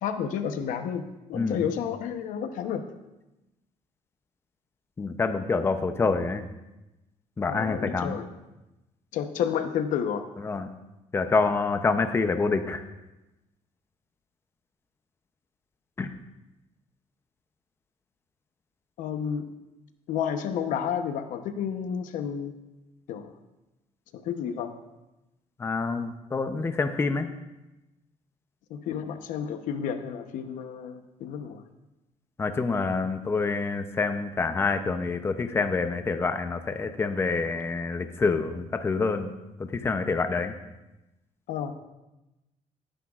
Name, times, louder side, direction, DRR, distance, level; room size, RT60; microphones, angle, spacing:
voice 1, 0.0-2.8 7.5-8.3 9.1-10.2 19.0-19.5 20.1-22.5 23.1-23.3 24.1-24.7 28.7-31.6 41.5-41.7, left 8 dB, 90° left, 8 dB, 0.9 m, -31 dB
voice 2, 5.0-6.5 7.4-8.2 10.4-10.7 11.1-12.8 16.0-16.1 25.6-27.3 32.4-39.3 39.8-40.5, left 4 dB, 20° left, 8 dB, 0.6 m, -27 dB
18.5 x 10.0 x 2.4 m, 1.0 s
cardioid pair, 150°, 13 cm